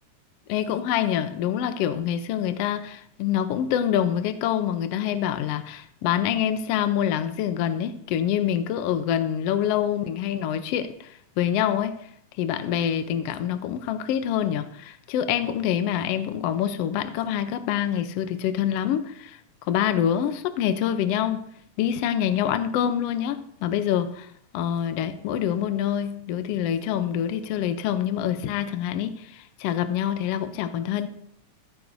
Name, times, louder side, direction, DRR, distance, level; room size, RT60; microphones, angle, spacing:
voice 1, 0.5-12.0 12.4-19.4 19.7-21.5 21.8-24.3 24.5-31.1, left 10 dB, 75° left, 1.5 m, -26 dB
15.0 x 9.0 x 2.7 m
omnidirectional pair, 3.4 m